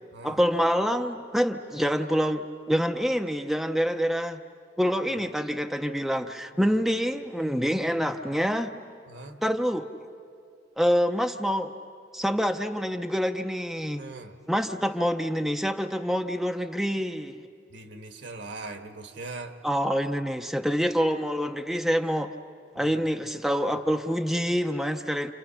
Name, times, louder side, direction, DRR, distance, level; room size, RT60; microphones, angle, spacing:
voice 1, 0.2-4.4 4.8-8.7 9.4-9.9 10.8-11.8 12.1-14.0 14.5-17.4 19.6-22.3 22.7-25.3, equal, ahead, 5 dB, 0.6 m, -26 dB
voice 2, 9.1-9.4 14.0-14.4 17.7-19.6 22.7-23.0, right 3 dB, 70° right, 6 dB, 1.5 m, -41 dB
29.0 x 28.0 x 5.7 m, 2.3 s
head